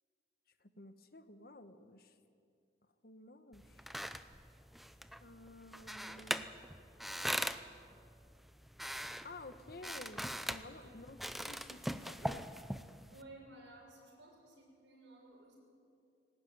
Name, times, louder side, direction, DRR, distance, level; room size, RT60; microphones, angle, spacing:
voice 1, 0.6-2.2 3.0-3.9 5.2-6.5 9.2-11.2 11.5-12.5, left 2 dB, 55° left, 9 dB, 1.2 m, -53 dB
sound 1, 3.5-13.2, equal, ahead, 0.6 m, -42 dB
voice 2, 13.1-15.6, right 2 dB, 85° right, -1 dB, 7.2 m, -56 dB
20.0 x 18.5 x 9.4 m, 2.4 s
head